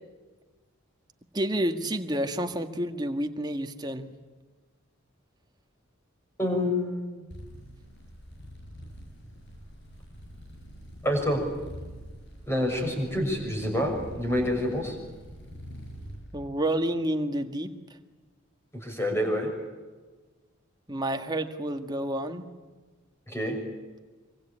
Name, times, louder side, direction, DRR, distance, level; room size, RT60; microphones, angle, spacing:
voice 1, 1.3-4.1 16.3-17.7 20.9-22.5, right 1 dB, 20° right, 6 dB, 1.6 m, -29 dB
voice 2, 6.4-7.3 11.0-11.4 12.5-14.9 18.7-19.5 23.3-23.6, left 1 dB, 10° left, 2 dB, 6.6 m, -27 dB
sound 1, 7.3-16.2, equal, 55° left, 8.0 m, -45 dB
25.5 x 25.0 x 8.8 m, 1.3 s
head